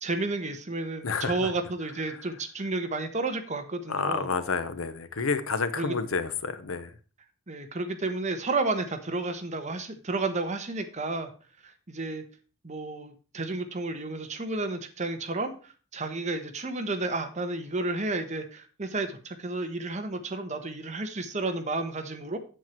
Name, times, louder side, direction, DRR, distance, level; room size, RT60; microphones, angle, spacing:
voice 1, 0.0-4.3 5.7-6.0 7.5-11.3 11.6-12.2 12.6-22.4, right 2 dB, 35° right, 1.2 m, -31 dB
voice 2, 1.0-1.5 3.9-6.9, left 4 dB, 85° left, 0.9 m, -29 dB
8.3 x 7.8 x 4.5 m
head